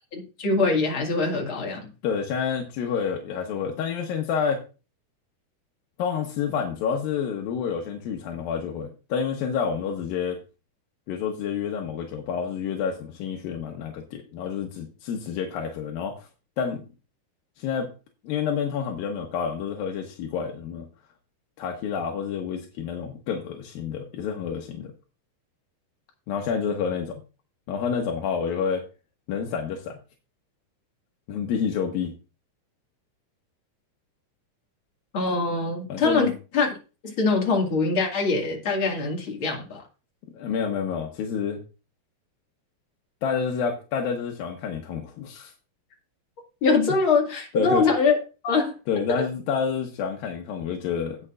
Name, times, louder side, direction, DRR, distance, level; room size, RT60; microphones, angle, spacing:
voice 1, 0.1-1.9 35.1-36.7 37.0-39.8 46.6-48.1 48.4-48.7, left 4 dB, 40° left, 1 dB, 2.5 m, -23 dB
voice 2, 2.0-4.6 6.0-10.4 11.1-16.3 16.6-16.8 17.6-17.9 18.2-20.9 21.6-24.9 26.3-27.2 27.7-28.8 29.3-30.0 31.3-32.1 35.9-36.3 40.3-41.6 43.2-45.5 47.5-47.9 48.9-51.2, left 6 dB, 85° left, 2 dB, 2.9 m, -28 dB
17.5 x 6.7 x 2.5 m, 0.33 s
omnidirectional pair, 4.1 m